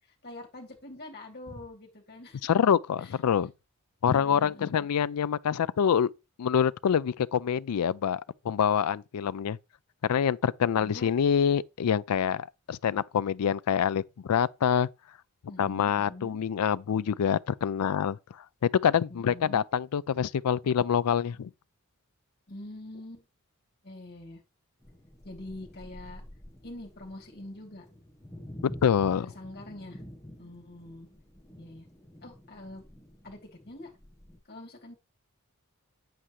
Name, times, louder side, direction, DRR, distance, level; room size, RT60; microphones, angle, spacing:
voice 1, 0.2-2.4 3.0-3.1 4.1-4.9 10.8-11.1 15.5-16.4 19.1-19.6 22.5-23.2 23.8-24.4 25.2-26.2 26.6-27.8 29.2-30.0 30.4-31.1 31.6-31.9 32.2-32.8 33.2-33.4 33.7-33.9 34.5-35.0, left 1 dB, 45° left, 2.8 m, -44 dB
voice 2, 2.4-3.5 4.0-6.1 6.4-9.6 10.0-14.9 15.6-18.2 18.6-21.5 28.8-29.3, left 8 dB, 85° left, 0.4 m, -26 dB
sound 1, 24.8-34.4, equal, 15° left, 1.2 m, -48 dB
8.6 x 7.8 x 3.1 m
head